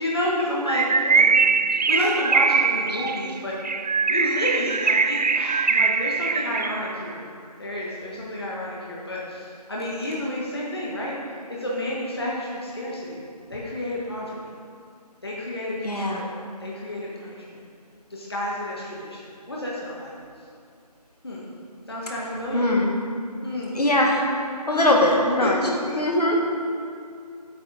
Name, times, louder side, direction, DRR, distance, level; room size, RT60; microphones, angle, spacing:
voice 1, 0.0-1.4 1.7-3.5 4.1-7.2 7.6-11.1 11.5-13.2 13.5-14.5 15.2-16.3 16.6-17.6 18.1-19.2 19.5-20.1 21.2-21.4 21.9-22.7 23.4-23.7 24.7-24.9 25.4-26.0, left 1 dB, 40° left, -5 dB, 1.4 m, -30 dB
Bird, 0.6-7.0, right 5 dB, 85° right, 0.5 m, -22 dB
voice 2, 15.8-16.2 22.5-22.9 23.8-24.3 24.7-25.6 26.0-26.4, left 1 dB, 70° left, -1 dB, 1.8 m, -21 dB
8.9 x 8.5 x 5.0 m, 2.3 s
figure-of-eight pair, 180°, 21 cm